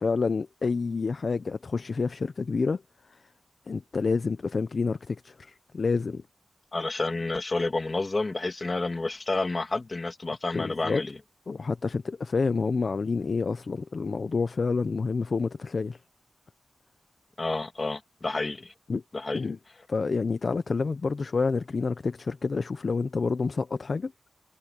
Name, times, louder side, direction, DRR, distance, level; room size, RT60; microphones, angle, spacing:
voice 1, 0.0-2.8 3.1-3.2 3.7-6.2 10.5-11.0 11.5-16.0 18.9-19.0 19.3-19.6 19.9-24.1, left 4 dB, 45° left, 0.6 m, -28 dB
voice 2, 6.7-11.1 17.4-18.7 19.1-19.4, left 3 dB, 30° left, 2.3 m, -30 dB
wide cardioid pair, 155°, 0 cm